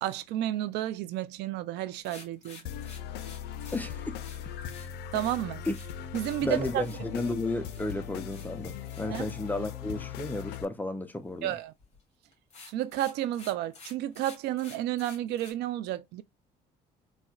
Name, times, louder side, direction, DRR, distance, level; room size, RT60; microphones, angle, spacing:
voice 1, 0.0-2.6 5.1-5.6 6.1-6.8 9.1-9.2 11.4-11.7 12.7-16.2, right 13 dB, 85° right, 0.4 m, -31 dB
sound 1, 2.0-7.3 7.6-8.5 8.8-9.3 11.8-12.0 12.3-15.5, left 4 dB, 40° left, 1.9 m, -51 dB
sound 2, 2.6-10.6, left 9 dB, 80° left, 0.5 m, -39 dB
voice 2, 3.7-4.2 4.4-4.5 5.7-5.8 6.4-11.5, left 2 dB, 10° left, 0.5 m, -33 dB
4.1 x 2.2 x 2.3 m
cardioid pair, 110°, 17 cm